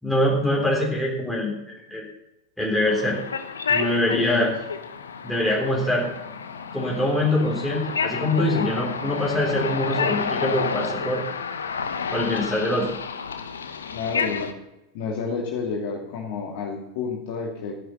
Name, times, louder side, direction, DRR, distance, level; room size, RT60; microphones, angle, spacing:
voice 1, 0.0-2.1 2.6-3.2 3.7-4.5 5.2-6.1 6.7-11.2 12.1-12.9, left 1 dB, ahead, -4 dB, 3.5 m, -24 dB
sound 1, 2.8-14.5, left 6 dB, 70° left, 1.2 m, -30 dB
voice 2, 4.1-4.5 13.9-14.5 14.9-17.7, left 5 dB, 50° left, -2 dB, 2.7 m, -30 dB
14.5 x 10.5 x 5.8 m, 0.95 s
figure-of-eight pair, 90°, 0 cm